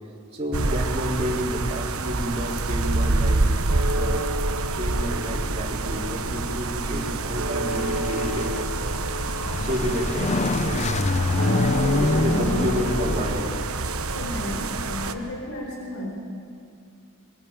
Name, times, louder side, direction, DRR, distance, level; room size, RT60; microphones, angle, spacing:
voice 1, 0.3-3.5 3.9-4.2 4.7-8.9 9.6-11.0 12.0-13.6, equal, 30° right, -3 dB, 4.0 m, -30 dB
sound 1, 0.5-15.1, right 3 dB, 85° right, 1.1 m, -27 dB
sound 2, 3.7-14.2, equal, 65° right, 1.8 m, -33 dB
sound 3, 7.7-13.6, left 3 dB, 30° left, 0.5 m, -26 dB
voice 2, 11.4-12.8 14.1-16.1, left 1 dB, 75° left, 0 dB, 4.6 m, -34 dB
22.5 x 22.0 x 9.0 m, 2.4 s
head